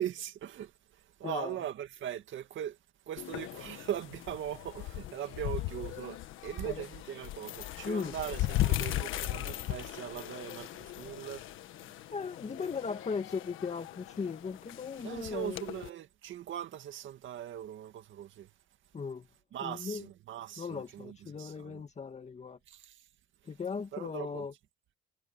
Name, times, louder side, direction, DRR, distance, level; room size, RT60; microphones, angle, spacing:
voice 1, 0.0-2.8 3.1-11.5 15.0-18.5 19.5-21.8 22.7-23.0 23.9-24.5, right 11 dB, 75° right, 2.1 m, -40 dB
voice 2, 1.2-1.6 6.6-6.8 7.8-8.1 12.1-15.6 18.9-19.2 19.6-20.0 20.6-22.6 23.5-24.5, left 5 dB, 35° left, 2.1 m, -37 dB
sound 1, 3.2-15.9, left 15 dB, 90° left, 1.4 m, -38 dB
cardioid pair, 90°, 20 cm